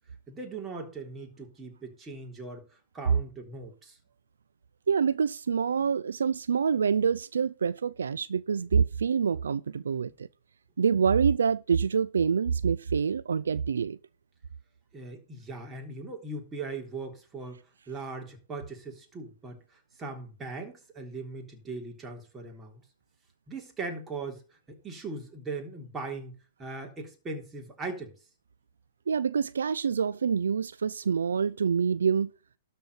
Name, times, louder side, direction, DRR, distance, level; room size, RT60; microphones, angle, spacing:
voice 1, 0.3-4.0 14.9-22.8 23.5-28.1, right 3 dB, 15° right, 3.5 m, -40 dB
voice 2, 4.9-10.3 10.8-14.0 29.1-32.3, right 6 dB, 75° right, 0.5 m, -26 dB
12.5 x 4.6 x 8.1 m
hypercardioid pair, 120°, 0 cm